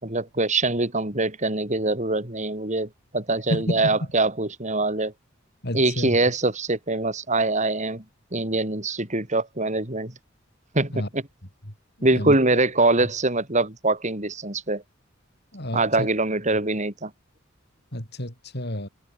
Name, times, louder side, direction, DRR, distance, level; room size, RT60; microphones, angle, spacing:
voice 1, 0.0-5.1 5.7-8.0 8.3-10.1 10.7-11.2 12.0-14.8 15.7-17.1, right 2 dB, 35° right, 5.4 m, -23 dB
voice 2, 3.5-4.0 5.6-6.1 10.9-11.1 12.1-12.4 15.5-16.1 17.9-18.9, equal, 55° left, 7.4 m, -29 dB
head